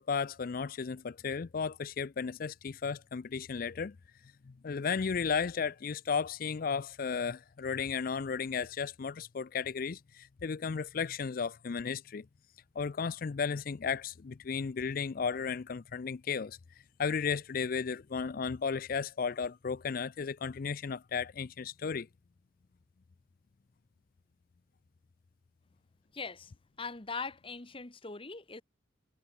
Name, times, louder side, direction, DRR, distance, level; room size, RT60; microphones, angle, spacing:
voice 1, 0.0-4.0 4.5-12.3 12.8-16.6 17.0-22.1, left 5 dB, 45° left, 0.4 m, -34 dB
voice 2, 26.1-26.5 26.8-28.6, left 4 dB, 25° left, 1.2 m, -41 dB
head